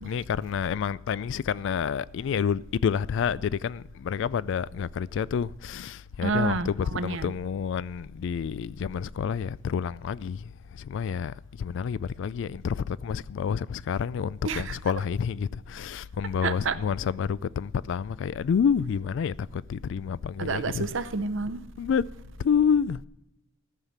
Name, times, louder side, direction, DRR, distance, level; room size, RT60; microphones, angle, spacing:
voice 1, 0.0-10.5 10.8-20.9 21.8-22.0 22.4-23.0, left 7 dB, 65° left, 0.3 m, -29 dB
voice 2, 6.2-7.3 14.4-14.8 16.4-16.8 20.4-21.6, right 4 dB, 65° right, 0.7 m, -29 dB
14.0 x 5.7 x 7.2 m
head